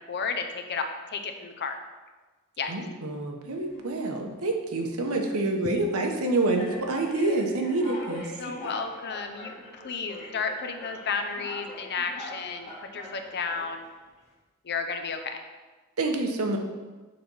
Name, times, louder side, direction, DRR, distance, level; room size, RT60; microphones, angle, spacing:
voice 1, 0.0-1.8 2.6-2.7 8.4-13.8 14.6-15.4, left 5 dB, 50° left, 6 dB, 0.7 m, -32 dB
voice 2, 2.7-8.3 16.0-16.6, right 2 dB, 85° right, 2 dB, 1.0 m, -27 dB
sound 1, 3.5-4.1 4.8-5.0 5.8-6.0 6.5-13.8, left 2 dB, 30° left, 1.6 m, -43 dB
6.8 x 4.2 x 5.5 m, 1.3 s
head